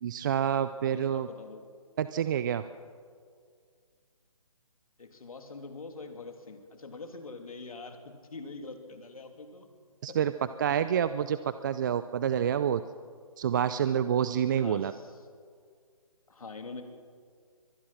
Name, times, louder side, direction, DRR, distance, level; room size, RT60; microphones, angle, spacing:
voice 1, 0.0-1.3 2.0-2.7 10.0-10.3 10.6-12.8 13.4-14.9, right 9 dB, 35° right, 13 dB, 0.5 m, -28 dB
voice 2, 0.9-1.7 5.0-9.7 10.1-10.3 14.5-15.2 16.3-16.8, left 3 dB, 70° left, 5 dB, 2.9 m, -44 dB
24.0 x 19.5 x 5.9 m, 2.1 s
figure-of-eight pair, 145°, 19 cm